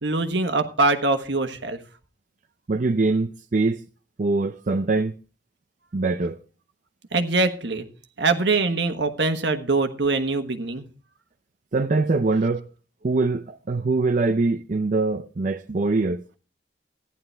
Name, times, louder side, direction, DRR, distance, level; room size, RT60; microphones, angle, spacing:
voice 1, 0.0-1.8 7.1-7.8 8.2-10.8, right 3 dB, 70° right, 1.3 m, -23 dB
voice 2, 2.7-3.8 4.2-5.1 5.9-6.4 11.7-12.6 13.0-16.2, right 3 dB, 45° right, 0.5 m, -23 dB
15.0 x 10.5 x 3.4 m
head